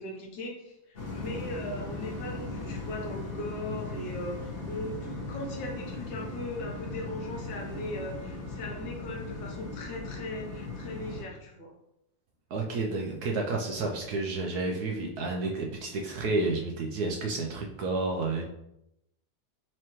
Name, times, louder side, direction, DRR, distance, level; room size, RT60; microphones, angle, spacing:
voice 1, 0.0-11.7, left 1 dB, 80° left, 0 dB, 1.6 m, -39 dB
sound 1, 0.9-11.2, left 2 dB, 35° left, 1.4 m, -38 dB
voice 2, 12.5-18.4, right 3 dB, 70° right, 0 dB, 1.0 m, -30 dB
4.6 x 3.0 x 3.0 m, 0.83 s
omnidirectional pair, 2.0 m